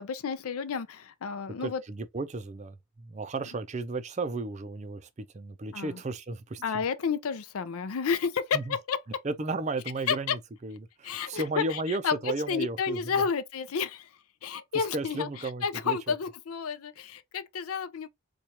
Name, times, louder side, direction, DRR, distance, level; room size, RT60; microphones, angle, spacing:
voice 1, 0.0-1.8 5.7-6.0 6.6-9.0 10.1-10.4 11.0-12.2 12.5-14.1 14.4-15.3 15.6-18.1, left 6 dB, 75° left, 0.5 m, -31 dB
voice 2, 1.6-6.8 8.5-8.8 9.2-13.1 14.9-16.1, right 3 dB, 30° right, 0.4 m, -34 dB
4.4 x 2.3 x 2.8 m
head